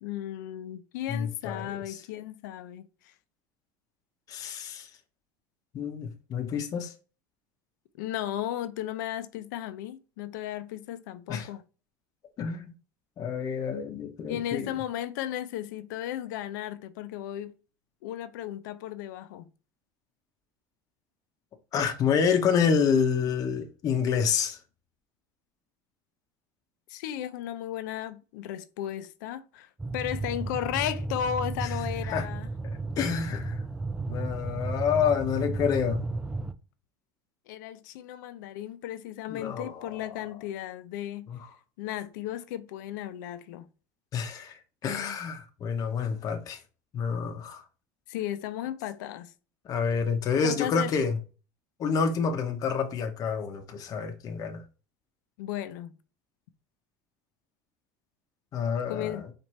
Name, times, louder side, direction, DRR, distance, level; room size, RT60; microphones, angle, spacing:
voice 1, 0.0-3.1 8.0-11.6 14.3-17.5 18.0-19.5 26.9-32.5 37.5-41.3 41.8-43.7 48.1-49.3 50.4-50.9 55.4-55.9 58.9-59.2, left 11 dB, 85° left, 0.5 m, -35 dB
voice 2, 1.1-2.0 4.3-4.9 5.7-6.9 11.3-11.5 12.4-12.7 13.2-14.7 21.7-24.6 31.6-31.7 32.0-32.3 32.6-33.6 34.1-36.0 39.3-40.2 41.3-41.4 44.1-46.6 46.9-47.6 49.6-51.2 51.8-54.6 58.5-59.2, left 6 dB, 40° left, 0.7 m, -28 dB
sound 1, 29.8-36.5, right 3 dB, 5° right, 0.4 m, -33 dB
4.6 x 2.5 x 4.1 m
supercardioid pair, 125°, 10 cm